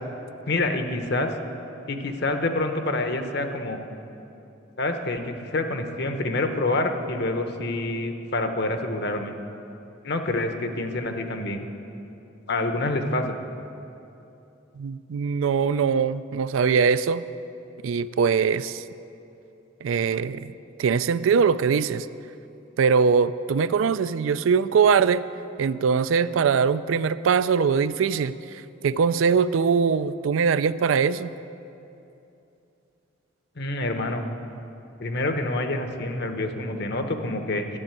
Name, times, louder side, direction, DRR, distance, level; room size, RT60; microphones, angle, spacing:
voice 1, 0.5-1.3 1.9-3.8 4.8-9.3 10.0-11.7 12.5-13.4 33.6-34.3 35.0-37.8, left 2 dB, 55° left, 6 dB, 1.0 m, -27 dB
voice 2, 14.8-17.2 17.8-18.8 19.8-20.5 20.8-22.1 22.8-25.2 25.6-28.4 28.8-31.3, right 6 dB, 80° right, 15 dB, 0.4 m, -22 dB
12.5 x 7.4 x 8.9 m, 2.8 s
head